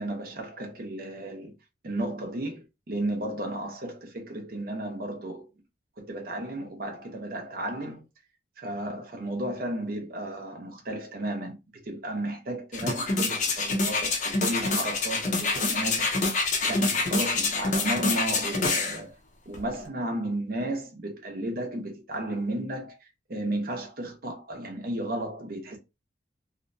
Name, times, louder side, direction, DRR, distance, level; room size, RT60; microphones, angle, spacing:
voice 1, 0.0-1.5 1.8-5.5 6.0-8.0 8.6-16.1 16.6-19.1 19.5-23.0 23.3-25.8, right 1 dB, 50° right, 0.6 m, -33 dB
sound 1, 12.7-19.0 19.5-19.6, left 3 dB, 40° left, 0.5 m, -26 dB
2.5 x 2.1 x 2.5 m
head